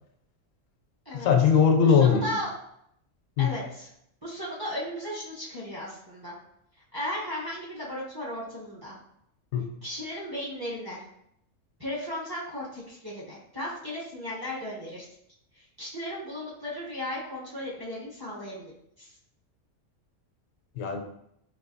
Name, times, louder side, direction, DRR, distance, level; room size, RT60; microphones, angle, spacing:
voice 1, 1.1-2.3 3.4-3.5 9.5-9.7 20.8-21.0, left 6 dB, 90° left, 4 dB, 1.0 m, -20 dB
voice 2, 1.8-2.5 3.4-3.9 4.2-6.3 6.9-9.0 9.8-11.0 11.8-15.1 15.8-18.7 19.0-19.1, equal, 25° right, -6 dB, 0.7 m, -35 dB
3.9 x 2.6 x 2.6 m, 0.74 s
omnidirectional pair, 1.3 m